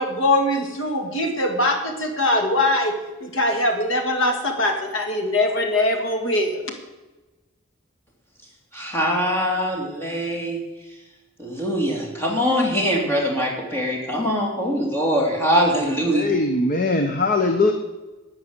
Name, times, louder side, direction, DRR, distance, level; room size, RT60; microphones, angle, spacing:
voice 1, 0.0-6.7, left 1 dB, 75° left, 5 dB, 2.0 m, -22 dB
voice 2, 8.7-10.6 11.4-16.3, equal, 10° left, -2 dB, 2.9 m, -22 dB
voice 3, 16.1-17.7, left 2 dB, 45° left, 5 dB, 1.0 m, -20 dB
11.0 x 9.4 x 8.1 m, 1.1 s
head